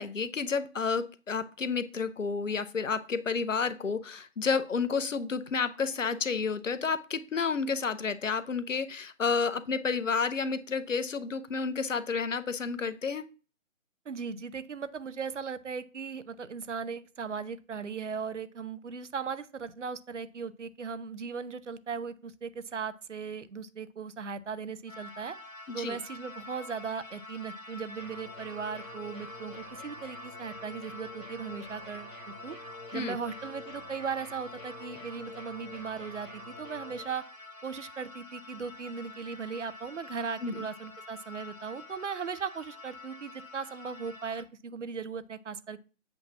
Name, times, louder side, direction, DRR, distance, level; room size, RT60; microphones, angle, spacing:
voice 1, 0.0-13.2 25.7-26.0 32.9-33.2 40.4-40.6, left 5 dB, 70° left, 13 dB, 0.8 m, -30 dB
voice 2, 14.1-25.4 25.7-32.1 32.4-32.6 32.9-37.2 37.6-45.8, right 6 dB, 65° right, 14 dB, 0.7 m, -38 dB
sound 1, 24.9-44.4, left 3 dB, 90° left, 1.3 m, -47 dB
sound 2, 28.0-37.0, equal, ahead, 0.9 m, -47 dB
7.8 x 2.9 x 5.7 m, 0.36 s
figure-of-eight pair, 145°, 40 cm